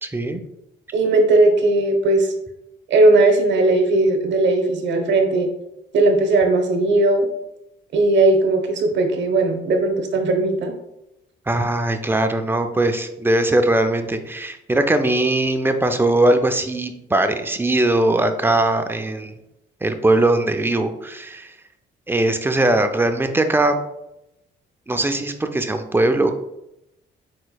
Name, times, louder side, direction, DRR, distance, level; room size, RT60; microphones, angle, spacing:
voice 1, 0.0-0.4 11.5-19.3 19.8-21.5 22.1-23.7 24.9-26.3, right 2 dB, 10° right, 7 dB, 0.4 m, -20 dB
voice 2, 0.9-2.3 2.9-5.5 5.9-7.3 7.9-10.7, right 2 dB, 65° right, 4 dB, 0.9 m, -17 dB
4.5 x 4.3 x 2.3 m, 0.86 s
cardioid pair, 90°, 20 cm